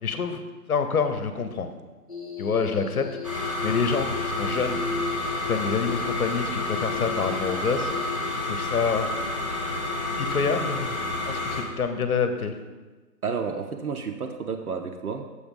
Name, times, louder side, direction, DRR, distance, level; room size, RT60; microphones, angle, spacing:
voice 1, 0.0-1.7 2.4-3.1 3.3-4.8 5.4-8.1 8.4-9.1 10.2-11.0 11.3-12.5, left 5 dB, 60° left, 8 dB, 0.8 m, -27 dB
sound 1, 2.1-8.4, left 6 dB, 25° left, 0.8 m, -36 dB
sound 2, 3.2-11.6, left 2 dB, 20° right, 0.7 m, -30 dB
voice 2, 13.2-15.3, right 5 dB, 65° right, 4 dB, 0.7 m, -31 dB
6.8 x 4.2 x 5.2 m, 1.3 s
figure-of-eight pair, 160°, 49 cm